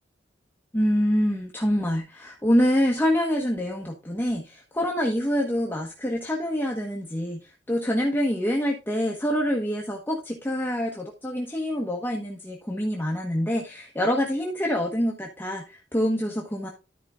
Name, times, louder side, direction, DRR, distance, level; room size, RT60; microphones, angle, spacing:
voice 1, 0.7-7.4 7.7-16.7, equal, 10° left, -1 dB, 1.3 m, -26 dB
13.0 x 5.0 x 3.7 m, 0.29 s
head